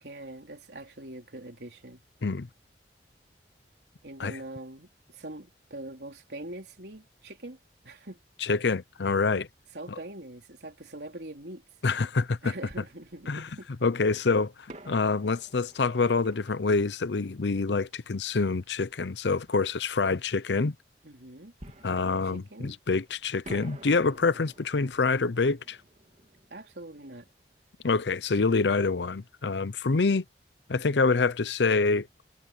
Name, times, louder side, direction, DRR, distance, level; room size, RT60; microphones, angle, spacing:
voice 1, 0.0-2.0 4.0-7.6 7.8-8.2 9.7-11.6 12.4-13.8 21.0-21.5 22.0-22.8 26.5-27.3, right 1 dB, 70° right, 3.7 m, -43 dB
voice 2, 8.4-9.5 11.8-12.5 13.3-13.5 13.8-14.5 14.9-20.7 21.8-25.8 27.8-30.2 30.7-32.1, left 4 dB, 80° left, 0.7 m, -26 dB
Fireworks, 12.7-13.8 14.7-18.1 21.6-23.0 23.4-28.0 28.2-28.3 28.9-29.1, right 1 dB, 40° right, 3.1 m, -51 dB
head